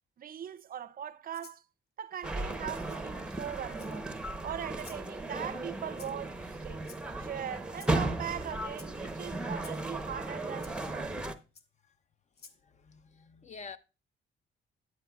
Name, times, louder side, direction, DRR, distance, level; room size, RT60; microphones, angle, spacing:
voice 1, 0.2-1.6 2.0-4.1 4.4-6.9 7.2-11.2, right 9 dB, 45° right, 0.5 m, -40 dB
Rattle (instrument), 1.3-1.6 2.9-3.0 3.7-4.2 4.7-5.1 6.0-6.3 6.8-7.3 7.7-8.0 8.7-8.9 9.6-9.8 10.6-10.7 11.5-11.7 12.3-12.6, left 4 dB, 55° left, 1.0 m, -53 dB
sound 1, 2.2-11.3, right 2 dB, 5° right, 0.8 m, -36 dB
voice 2, 12.6-13.8, left 5 dB, 35° left, 0.6 m, -48 dB
9.2 x 9.0 x 2.3 m
cardioid pair, 90°, 20 cm